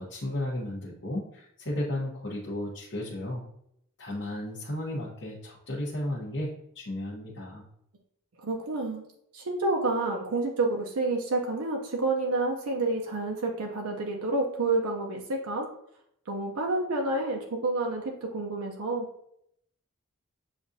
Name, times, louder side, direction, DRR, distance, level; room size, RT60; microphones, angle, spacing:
voice 1, 0.0-3.4 4.0-7.6, left 1 dB, 55° left, -7 dB, 0.9 m, -34 dB
voice 2, 8.4-9.1 9.3-15.7 16.3-19.1, right 2 dB, 75° right, 1 dB, 0.6 m, -29 dB
7.0 x 2.5 x 2.6 m, 0.74 s
head